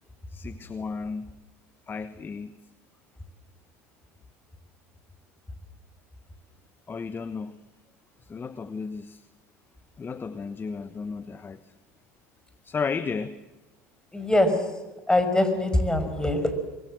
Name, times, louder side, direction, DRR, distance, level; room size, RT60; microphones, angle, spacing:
voice 1, 0.3-1.3 1.9-2.6 6.9-7.6 8.2-9.3 10.0-11.7 12.6-13.4, left 5 dB, 25° left, 13 dB, 1.2 m, -34 dB
voice 2, 14.1-14.7 15.1-16.7, left 1 dB, 10° left, 9 dB, 5.4 m, -23 dB
25.0 x 22.0 x 7.8 m, 1.1 s
hypercardioid pair, 80°, 8 cm